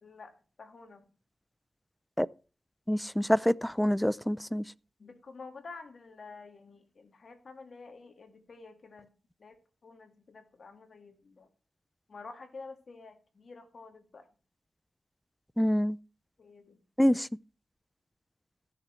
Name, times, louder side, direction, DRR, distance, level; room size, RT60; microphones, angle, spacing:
voice 1, 0.0-1.1 5.0-9.1 9.4-11.5 12.1-14.3 16.4-16.8, left 4 dB, 60° left, 2.3 m, -49 dB
voice 2, 2.9-4.6 15.6-16.0 17.0-17.3, equal, 5° left, 0.5 m, -26 dB
15.5 x 6.8 x 4.4 m
cardioid pair, 55°, 0 cm